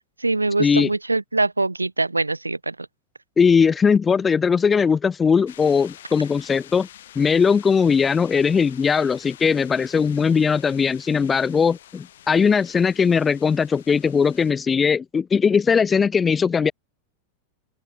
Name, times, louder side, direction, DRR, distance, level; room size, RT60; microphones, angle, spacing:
voice 1, 0.2-2.9, right 2 dB, 80° right, 0.7 m, -23 dB
voice 2, 3.4-6.9 7.2-16.7, left 6 dB, 20° left, 1.0 m, -19 dB
sound 1, 5.5-14.5, left 12 dB, 60° left, 4.1 m, -47 dB
open air
figure-of-eight pair, 90°, 0 cm